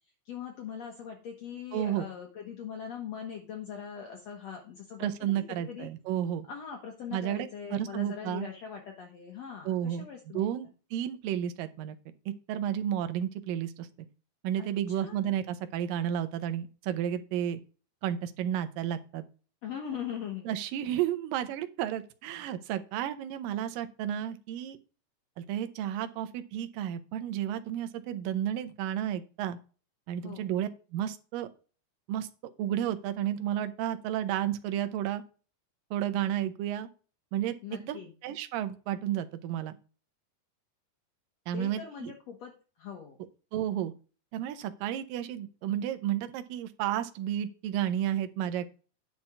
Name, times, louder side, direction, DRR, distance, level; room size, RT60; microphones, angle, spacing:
voice 1, 0.3-5.9 6.5-10.5 14.6-15.4 19.6-20.5 30.2-30.5 37.6-38.1 41.5-43.2, left 8 dB, 60° left, 2 dB, 2.1 m, -41 dB
voice 2, 1.7-2.0 5.0-6.5 7.1-8.5 9.7-10.1 10.3-12.0 12.3-13.9 14.4-17.6 18.0-19.2 20.5-24.8 25.4-29.6 30.1-31.5 32.1-32.3 32.6-35.2 35.9-36.9 37.3-37.5 37.8-38.0 38.2-39.8 41.5-42.1 43.5-43.9 44.3-48.7, right 11 dB, 85° right, 9 dB, 2.5 m, -32 dB
10.0 x 4.4 x 5.9 m, 0.36 s
omnidirectional pair, 3.9 m